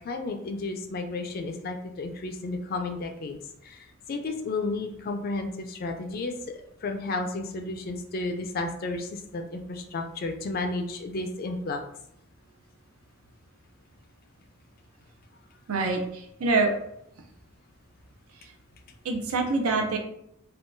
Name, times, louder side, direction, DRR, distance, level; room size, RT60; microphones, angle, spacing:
voice 1, 0.0-6.3 6.8-11.8, left 3 dB, 45° left, 5 dB, 0.4 m, -32 dB
voice 2, 15.7-16.7 19.0-20.0, right 3 dB, 90° right, 2 dB, 0.6 m, -25 dB
3.6 x 2.2 x 2.5 m, 0.76 s
head